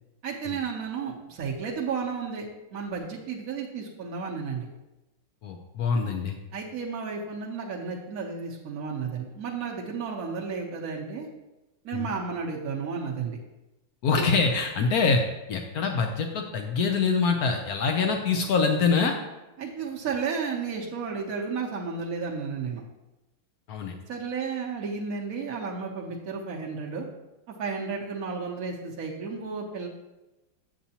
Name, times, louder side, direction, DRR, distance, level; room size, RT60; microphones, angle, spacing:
voice 1, 0.2-4.7 6.5-11.3 11.8-13.4 19.6-22.8 24.1-27.1 27.6-29.9, right 5 dB, 65° right, -3 dB, 0.9 m, -33 dB
voice 2, 5.4-6.4 11.9-12.1 14.0-15.2 15.5-19.1 23.7-24.0, left 4 dB, 85° left, 4 dB, 0.8 m, -25 dB
8.5 x 6.9 x 2.8 m, 1.0 s
omnidirectional pair, 2.4 m